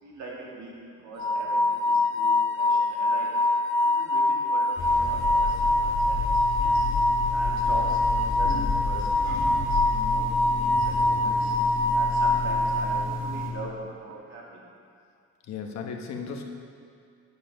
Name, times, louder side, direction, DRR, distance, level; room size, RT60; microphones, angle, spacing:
voice 1, 0.0-0.7 1.0-3.3 3.8-6.9 7.3-9.1 9.5-9.8 10.1-11.5 11.9-14.6, right 2 dB, 70° right, -4 dB, 2.3 m, -42 dB
sound 1, 1.2-13.4, left 1 dB, 40° right, 2.4 m, -24 dB
sound 2, 4.8-13.5, left 4 dB, 40° left, 2.1 m, -31 dB
voice 2, 15.5-16.4, left 5 dB, 65° left, 2 dB, 1.1 m, -35 dB
10.0 x 7.1 x 5.4 m, 2.3 s
cardioid pair, 155°, 30 cm